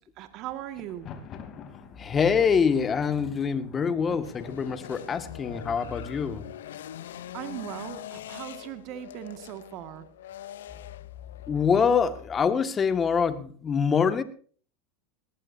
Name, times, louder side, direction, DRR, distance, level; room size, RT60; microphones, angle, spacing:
voice 1, 0.2-1.1 7.3-10.1, right 12 dB, 50° right, 9 dB, 2.0 m, -38 dB
Thunder, 0.8-8.6, left 7 dB, 40° left, 3.4 m, -49 dB
voice 2, 2.0-6.4 11.5-14.2, left 6 dB, 25° left, 10 dB, 2.0 m, -25 dB
sound 1, 4.2-12.3, left 12 dB, 85° left, 0.8 m, -44 dB
19.5 x 18.5 x 2.8 m, 0.43 s
hypercardioid pair, 110°, 0 cm